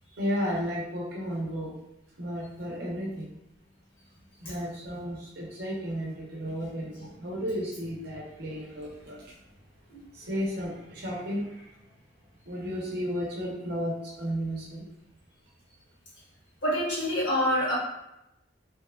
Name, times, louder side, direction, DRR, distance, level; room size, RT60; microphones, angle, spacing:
voice 1, 0.2-1.7 2.2-3.3 4.4-9.3 10.1-11.7 12.5-14.9, equal, 55° right, -3 dB, 0.7 m, -33 dB
voice 2, 16.6-17.7, equal, 70° left, -7 dB, 1.3 m, -26 dB
2.8 x 2.2 x 2.2 m, 0.85 s
head